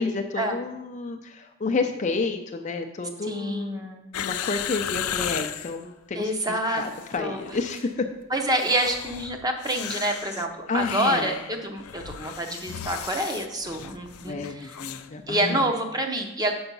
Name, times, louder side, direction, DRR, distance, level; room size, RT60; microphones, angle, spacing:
voice 1, 0.0-3.8 4.2-6.3 6.7-8.1 10.7-11.4 14.3-15.6, left 3 dB, 35° left, 6 dB, 0.5 m, -30 dB
voice 2, 3.2-4.1 6.1-6.8 7.2-7.4 8.3-14.8 15.3-16.5, right 1 dB, 20° right, 4 dB, 0.8 m, -27 dB
sound 1, 4.1-5.8 6.5-7.2 7.5-7.9 8.5-15.1 15.3-15.4, left 10 dB, 85° left, 0.4 m, -35 dB
7.0 x 5.5 x 5.4 m, 0.89 s
head